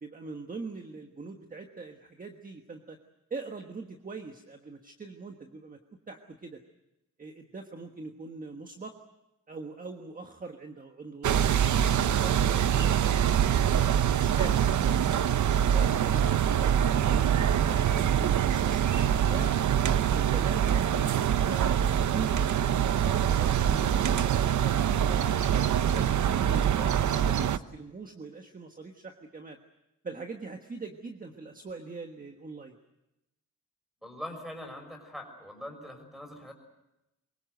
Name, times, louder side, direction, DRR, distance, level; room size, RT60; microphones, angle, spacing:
voice 1, 0.0-3.0 3.3-5.8 6.1-6.6 7.2-9.0 9.5-13.2 13.7-15.2 15.7-16.7 17.1-19.6 20.1-26.1 26.5-29.6 30.0-32.8, right 3 dB, 30° right, 4 dB, 1.4 m, -42 dB
sound 1, 11.2-27.6, right 9 dB, 70° right, 0.8 m, -24 dB
voice 2, 34.0-36.5, left 1 dB, ahead, 5 dB, 5.6 m, -42 dB
24.5 x 22.5 x 7.9 m, 0.91 s
wide cardioid pair, 180°, 31 cm